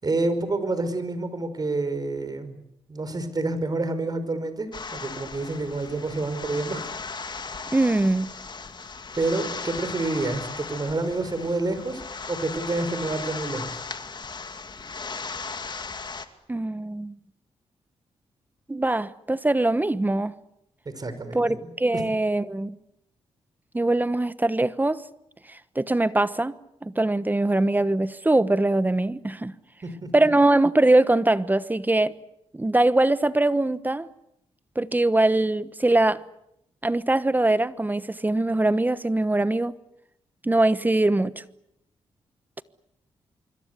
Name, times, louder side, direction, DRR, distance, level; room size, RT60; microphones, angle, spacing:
voice 1, 0.0-2.6 2.9-7.0 9.2-12.0 12.3-13.8 20.9-22.0 29.8-30.1, right 2 dB, 35° right, 5.3 m, -28 dB
sound 1, 4.7-16.3, left 4 dB, 40° left, 2.4 m, -37 dB
voice 2, 7.7-8.3 16.5-17.1 18.7-20.3 21.3-22.8 23.7-25.0 25.5-26.5 26.8-29.5 30.1-32.1 32.5-34.1 34.8-36.2 36.8-39.8 40.4-41.3, right 2 dB, 15° right, 1.1 m, -22 dB
25.5 x 24.5 x 8.3 m
cardioid pair, 75°, 11 cm